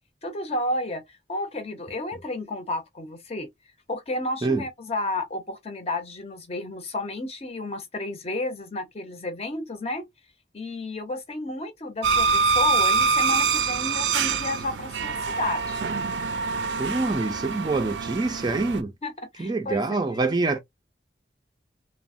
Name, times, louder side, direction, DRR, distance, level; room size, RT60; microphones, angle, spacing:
voice 1, 0.2-1.0 1.3-3.5 3.9-10.0 10.5-15.8 19.0-20.0, left 2 dB, 35° left, 0.6 m, -32 dB
sound 1, 12.0-18.8, right 4 dB, 90° right, 0.4 m, -25 dB
voice 2, 16.8-18.9 19.4-20.6, right 3 dB, 25° right, 0.4 m, -25 dB
3.0 x 2.1 x 2.4 m
head